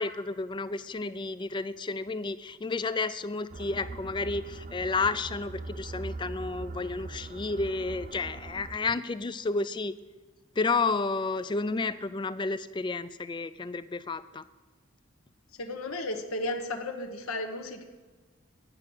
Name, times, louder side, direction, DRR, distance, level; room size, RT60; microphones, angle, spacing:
voice 1, 0.0-9.9 10.6-14.4, left 3 dB, 20° left, 15 dB, 0.3 m, -31 dB
sound 1, 3.5-8.8, right 2 dB, 40° right, 0.5 m, -41 dB
voice 2, 15.6-17.8, left 2 dB, 80° left, 3 dB, 1.2 m, -34 dB
9.7 x 6.2 x 8.7 m, 1.3 s
head